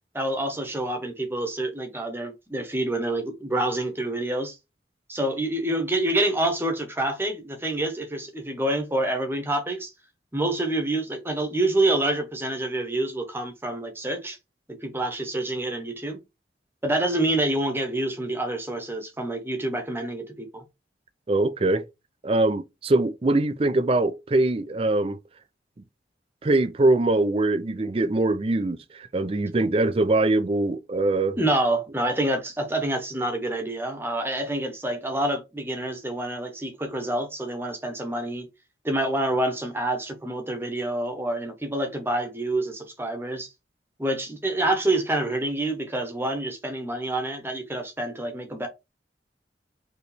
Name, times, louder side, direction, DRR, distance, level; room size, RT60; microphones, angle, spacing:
voice 1, 0.1-4.5 5.1-9.9 10.3-14.4 14.8-16.2 16.8-20.6 31.4-38.5 38.8-43.5 44.0-48.7, right 1 dB, 15° right, 1.0 m, -27 dB
voice 2, 21.3-21.9 22.2-25.2 26.4-31.4, right 2 dB, 30° right, 0.4 m, -23 dB
4.8 x 3.1 x 3.4 m
head